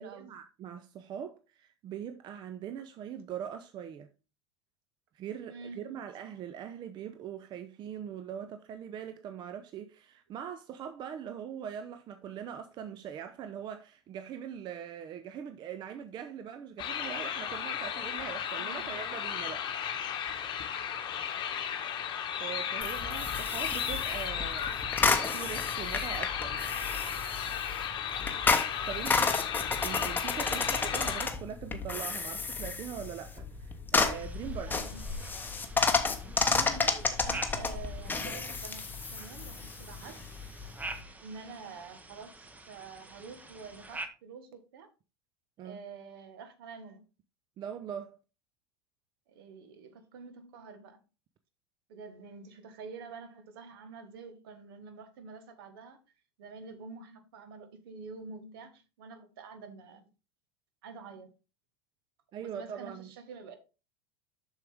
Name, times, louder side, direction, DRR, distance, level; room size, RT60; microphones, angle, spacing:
voice 1, 0.0-4.1 5.1-19.7 22.4-24.8 25.0-26.7 28.9-29.5 29.8-34.8 45.6-45.8 47.6-48.2 62.3-63.1, right 8 dB, 35° right, 0.6 m, -42 dB
voice 2, 5.5-6.0 18.6-19.0 30.5-30.8 34.7-35.2 36.5-40.2 41.2-44.9 45.6-47.0 49.3-51.0 51.9-56.0 56.4-60.0 60.8-61.3 62.4-63.5, right 4 dB, 60° right, 1.5 m, -47 dB
sound 1, 16.8-31.3, left 8 dB, 35° left, 1.2 m, -35 dB
sound 2, 22.8-41.0, left 4 dB, 15° left, 1.0 m, -32 dB
sound 3, 34.1-44.1, right 2 dB, 10° right, 1.0 m, -47 dB
7.6 x 6.4 x 3.4 m
figure-of-eight pair, 80°, 14 cm